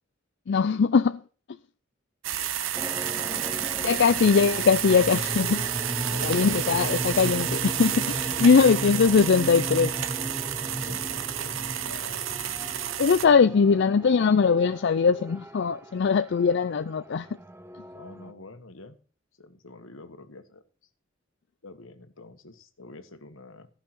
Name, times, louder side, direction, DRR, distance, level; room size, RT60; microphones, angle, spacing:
voice 1, 0.5-1.2 3.8-5.7 6.2-9.9 13.0-17.3, left 5 dB, 60° left, 0.4 m, -21 dB
sound 1, 2.2-13.3, right 10 dB, 75° right, 0.9 m, -30 dB
sound 2, 2.7-18.3, right 1 dB, 10° right, 0.6 m, -36 dB
voice 2, 3.3-3.7 6.0-6.8 8.4-8.5 10.9-11.6 11.9-12.4 17.9-19.0 19.4-20.6 21.6-23.7, left 3 dB, 80° left, 1.4 m, -46 dB
14.5 x 5.8 x 5.9 m
head